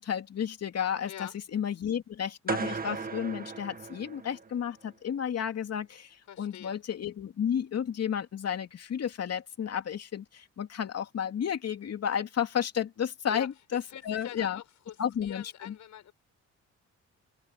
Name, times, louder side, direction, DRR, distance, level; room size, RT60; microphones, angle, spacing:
voice 1, 0.0-14.6 15.0-15.7, left 8 dB, 55° left, 3.0 m, -32 dB
voice 2, 1.1-1.4 6.3-6.8 13.3-13.5 13.9-15.0 15.2-16.1, left 11 dB, 70° left, 6.3 m, -44 dB
sound 1, 2.5-4.6, right 4 dB, 30° right, 1.9 m, -36 dB
cardioid pair, 90°, 30 cm